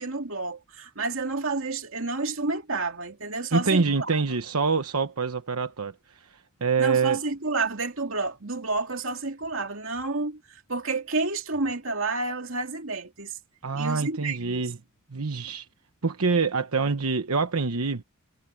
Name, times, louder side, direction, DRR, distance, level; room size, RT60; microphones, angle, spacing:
voice 1, 0.0-4.1 6.8-13.4 13.7-14.7, right 3 dB, 65° right, 2.7 m, -30 dB
voice 2, 3.5-7.2 13.6-14.8 15.1-15.7 16.0-18.0, right 4 dB, 90° right, 1.1 m, -26 dB
head